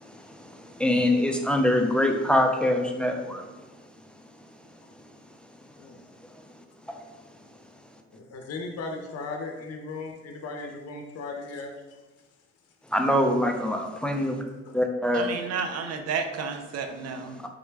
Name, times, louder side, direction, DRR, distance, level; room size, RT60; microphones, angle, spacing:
voice 1, 0.0-3.7 6.9-7.1 12.9-14.4 14.7-15.3 17.4-17.5, left 1 dB, 5° left, 0.3 m, -24 dB
voice 2, 8.1-11.7 14.7-14.8, left 3 dB, 55° left, 0.6 m, -37 dB
voice 3, 15.1-17.4, right 5 dB, 60° right, 0.5 m, -31 dB
3.7 x 2.2 x 3.2 m
cardioid pair, 90°, 30 cm